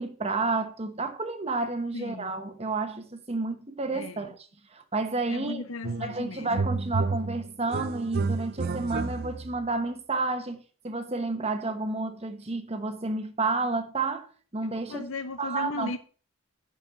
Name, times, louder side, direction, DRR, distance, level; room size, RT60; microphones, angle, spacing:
voice 1, 0.0-4.4 4.7-5.6 6.0-15.0 15.4-16.0, right 3 dB, 30° right, 1.0 m, -31 dB
voice 2, 1.9-2.3 3.9-4.3 5.3-6.5 14.9-16.0, left 3 dB, 70° left, 0.8 m, -36 dB
sound 1, 5.8-6.2 6.5-9.6, right 4 dB, 45° right, 0.4 m, -30 dB
11.0 x 4.6 x 7.6 m
head